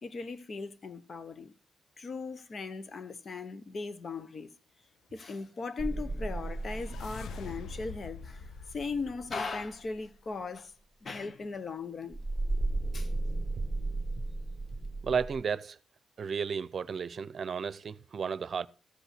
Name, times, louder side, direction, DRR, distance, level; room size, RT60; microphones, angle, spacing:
voice 1, 0.0-1.5 2.0-4.5 5.1-10.7 11.0-12.2 12.9-13.1, left 4 dB, 50° left, 1.1 m, -38 dB
sound 1, 5.8-9.3 12.1-15.4, right 2 dB, 5° right, 1.9 m, -35 dB
sound 2, 5.9-10.1, left 8 dB, 85° left, 0.6 m, -47 dB
voice 2, 15.0-15.8 16.2-18.7, right 6 dB, 55° right, 0.7 m, -33 dB
14.5 x 5.4 x 6.0 m
cardioid pair, 80°, 0 cm